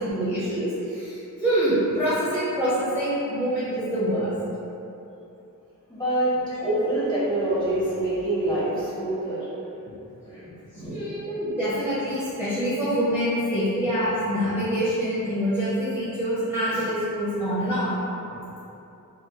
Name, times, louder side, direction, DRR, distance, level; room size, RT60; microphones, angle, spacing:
voice 1, 0.0-4.3 10.9-18.0, equal, 5° right, -14 dB, 0.8 m, -25 dB
voice 2, 5.9-6.3 6.6-9.5 10.3-10.4 10.7-11.1, right 1 dB, 15° left, -11 dB, 1.2 m, -26 dB
3.1 x 2.9 x 2.2 m, 2.9 s
wide cardioid pair, 85°, 33 cm